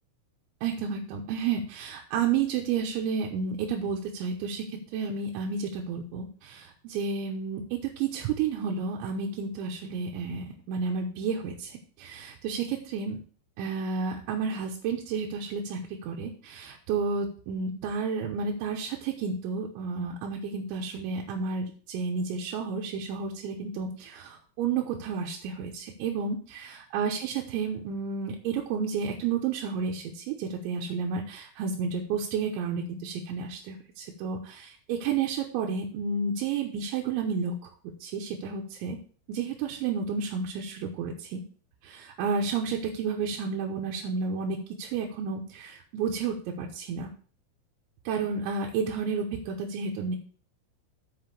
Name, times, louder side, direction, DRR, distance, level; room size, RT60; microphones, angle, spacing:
voice 1, 0.6-4.6 4.9-13.2 13.6-37.5 38.0-39.0 39.3-41.4 41.8-47.1 48.1-50.2, right 5 dB, 75° right, -1 dB, 3.1 m, -31 dB
7.8 x 5.3 x 6.8 m, 0.43 s
omnidirectional pair, 5.9 m